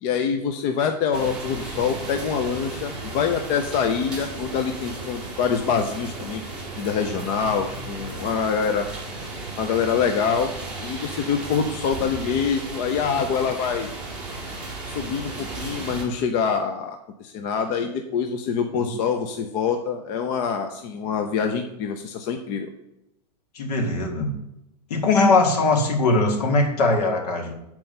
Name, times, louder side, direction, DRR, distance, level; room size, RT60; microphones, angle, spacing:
voice 1, 0.0-6.4 6.8-8.9 9.6-10.5 10.8-13.9 14.8-22.7, left 6 dB, 30° left, 6 dB, 0.5 m, -25 dB
sound 1, 1.1-16.0, right 2 dB, 5° right, 1.9 m, -35 dB
voice 2, 23.5-24.3 24.9-27.5, left 3 dB, 65° left, 2 dB, 2.0 m, -20 dB
7.6 x 4.4 x 5.4 m, 0.86 s
supercardioid pair, 155°, 21 cm